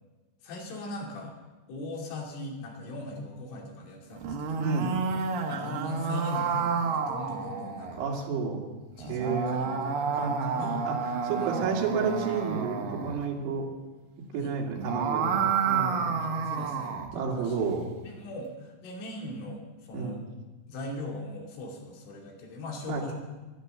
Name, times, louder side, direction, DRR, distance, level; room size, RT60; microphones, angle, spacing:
voice 1, 0.4-1.3 1.7-4.7 5.4-8.3 9.0-10.8 11.4-11.5 14.3-14.5 16.2-17.6 18.0-20.2 20.7-23.1, left 2 dB, 90° left, -1 dB, 5.1 m, -40 dB
sound 1, 4.1-8.0 9.0-13.2 14.6-17.1, right 6 dB, 65° right, 2.4 m, -30 dB
voice 2, 4.6-5.0 8.0-8.6 9.1-13.7 14.3-16.2 17.1-17.8 19.9-20.2 22.9-23.1, right 5 dB, 90° right, -1 dB, 4.5 m, -31 dB
14.0 x 12.5 x 6.7 m, 1.2 s
omnidirectional pair, 5.3 m